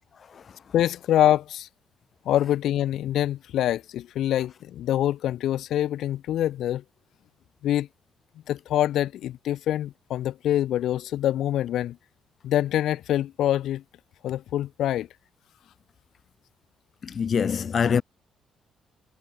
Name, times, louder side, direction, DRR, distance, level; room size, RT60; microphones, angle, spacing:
voice 1, 0.7-1.7 2.3-6.8 7.6-7.9 8.5-12.0 12.4-13.8 14.2-15.1, left 12 dB, 75° left, 2.4 m, -25 dB
voice 2, 17.0-18.0, left 7 dB, 50° left, 2.6 m, -24 dB
cardioid pair, 90°, 0 cm